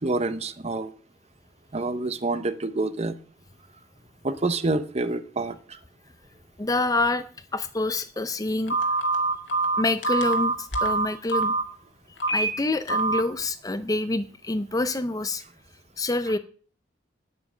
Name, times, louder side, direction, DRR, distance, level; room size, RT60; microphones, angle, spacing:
voice 1, 0.0-0.9 1.7-3.2 4.2-5.8, right 2 dB, 35° right, 11 dB, 0.8 m, -27 dB
voice 2, 6.6-7.2 7.5-8.8 9.8-11.5 12.3-15.4 16.0-16.4, left 2 dB, 20° left, 11 dB, 0.6 m, -26 dB
Telephone, 8.7-11.6 12.2-12.5 12.9-13.2, right 3 dB, 65° left, 2.3 m, -24 dB
9.6 x 8.6 x 6.2 m, 0.42 s
head